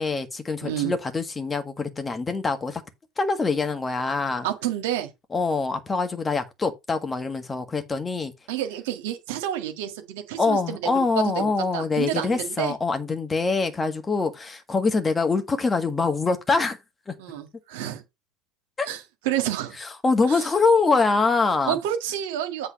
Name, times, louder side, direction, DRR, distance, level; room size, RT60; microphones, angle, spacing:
voice 1, 0.0-2.8 3.2-4.5 5.3-8.3 10.4-16.8 17.1-17.2 18.8-18.9 19.8-21.8, left 4 dB, 20° left, 1.6 m, -24 dB
voice 2, 0.6-0.9 4.4-5.1 8.5-12.7 17.2-18.0 18.9-19.8 20.3-20.5 21.7-22.7, right 11 dB, 70° right, 1.7 m, -29 dB
8.2 x 3.6 x 5.9 m
hypercardioid pair, 80°, 0 cm